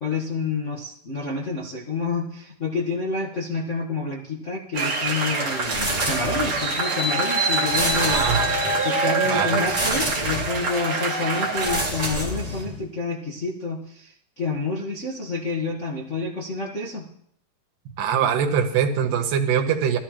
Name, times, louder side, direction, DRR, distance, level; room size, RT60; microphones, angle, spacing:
voice 1, 0.0-8.3 8.8-17.1, left 4 dB, 75° left, -2 dB, 0.6 m, -28 dB
sound 1, 4.7-11.8, right 3 dB, 35° right, 2.1 m, -25 dB
sound 2, 5.6-6.7 7.6-8.8 9.6-10.7 11.5-12.8, right 1 dB, 15° right, 1.7 m, -28 dB
voice 2, 8.0-8.5 9.2-9.7 18.0-20.0, right 8 dB, 85° right, 5 dB, 2.8 m, -23 dB
17.5 x 13.0 x 3.0 m, 0.68 s
omnidirectional pair, 3.8 m